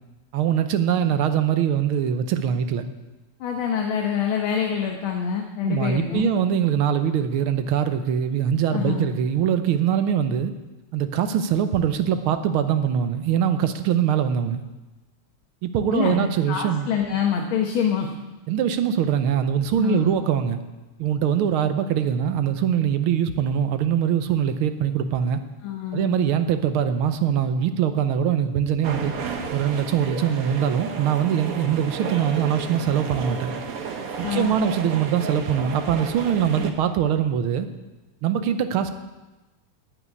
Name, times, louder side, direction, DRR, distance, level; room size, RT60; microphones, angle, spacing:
voice 1, 0.3-2.9 5.6-10.5 10.9-14.6 15.6-16.9 18.5-20.6 21.0-25.4 25.9-29.1 29.5-33.5 34.2-37.7 38.2-38.9, right 8 dB, 85° right, 9 dB, 1.7 m, -22 dB
voice 2, 3.4-6.3 8.7-9.1 15.9-18.1 19.8-20.1 25.6-26.2 34.2-34.6, left 7 dB, 75° left, 1 dB, 1.9 m, -26 dB
sound 1, 28.8-36.7, right 5 dB, 50° right, 1.2 m, -33 dB
9.1 x 8.5 x 9.5 m, 1.1 s
omnidirectional pair, 2.3 m